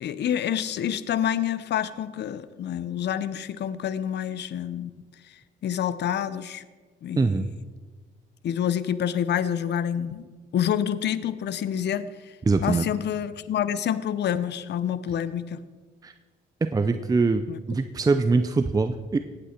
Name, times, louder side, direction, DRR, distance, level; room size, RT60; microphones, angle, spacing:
voice 1, 0.0-4.9 5.6-6.6 7.0-7.4 8.4-12.1 12.6-15.6 17.5-17.6, left 9 dB, 60° left, 15 dB, 0.7 m, -27 dB
voice 2, 7.2-7.5 12.5-12.9 16.0-16.1 16.6-19.2, right 3 dB, 20° right, 9 dB, 0.5 m, -23 dB
16.5 x 9.0 x 4.4 m, 1.4 s
cardioid pair, 90°, 20 cm